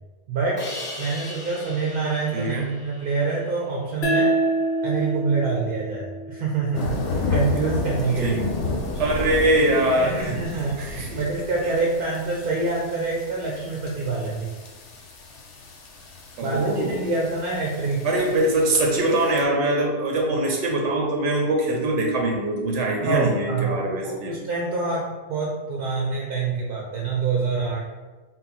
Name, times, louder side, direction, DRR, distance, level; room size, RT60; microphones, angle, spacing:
voice 1, 0.3-0.6 1.0-4.4 4.8-7.0 7.3-8.4 10.0-14.5 16.4-18.1 23.0-27.9, right 4 dB, 60° right, -2 dB, 0.7 m, -26 dB
Crash cymbal, 0.6-3.6, left 2 dB, 35° left, 0.6 m, -38 dB
voice 2, 2.3-2.7 8.2-8.3 9.0-11.2 11.6-11.7 16.4-17.0 18.0-24.3, right 1 dB, 85° right, 0 dB, 1.0 m, -23 dB
sound 1, 4.0-7.2, right 1 dB, 65° left, 0.9 m, -26 dB
sound 2, 6.7-19.4, left 3 dB, 90° left, 1.0 m, -32 dB
4.1 x 2.0 x 4.1 m, 1.3 s
omnidirectional pair, 1.2 m